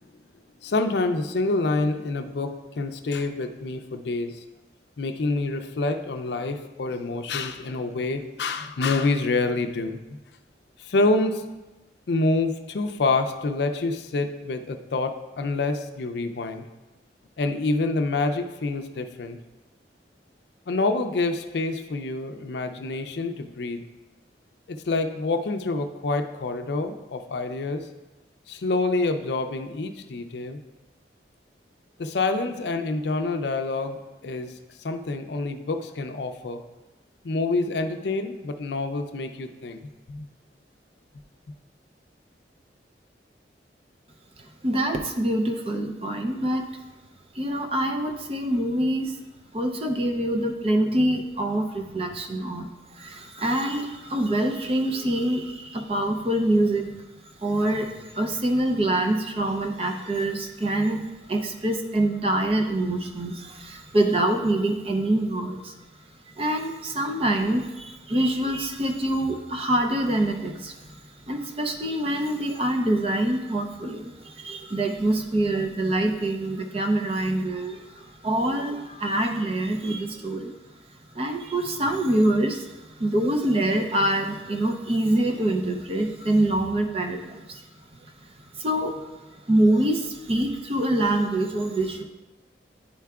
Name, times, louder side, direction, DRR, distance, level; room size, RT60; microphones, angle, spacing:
voice 1, 0.6-4.4 5.0-10.0 10.8-11.5 12.1-16.7 17.4-19.4 20.7-23.8 24.7-27.9 28.5-30.6 32.0-34.5 34.8-36.6 37.2-39.8 40.1-40.3, left 3 dB, 70° left, 7 dB, 0.5 m, -27 dB
voice 2, 44.6-46.7 47.3-49.2 49.5-57.0 57.4-65.7 66.4-80.6 81.1-87.6 88.2-88.3 88.5-89.1 89.5-92.0, right 1 dB, 30° right, 4 dB, 0.5 m, -25 dB
10.0 x 4.6 x 2.3 m, 1.1 s
head